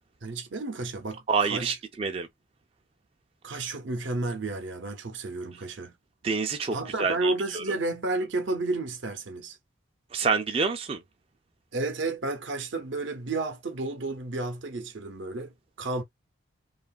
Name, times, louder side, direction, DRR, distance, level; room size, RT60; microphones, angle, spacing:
voice 1, 0.2-1.8 3.4-6.0 6.7-9.6 11.7-16.0, right 2 dB, 75° right, 0.6 m, -32 dB
voice 2, 1.3-2.3 6.2-7.6 10.1-11.0, right 5 dB, 30° right, 0.4 m, -27 dB
2.7 x 2.4 x 2.3 m
head